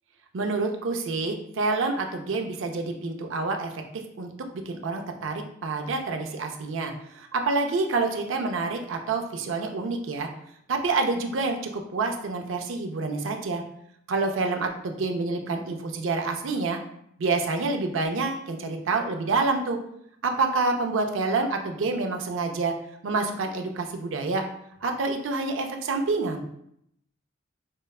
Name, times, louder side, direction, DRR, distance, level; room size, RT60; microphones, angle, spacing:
voice 1, 0.3-3.8 4.2-4.3 4.7-10.3 10.7-13.6 14.1-16.8 17.2-19.8 20.2-22.7 23.0-24.4 24.8-26.4, right 3 dB, 80° right, 4 dB, 0.5 m, -27 dB
4.5 x 2.1 x 2.3 m, 0.74 s
head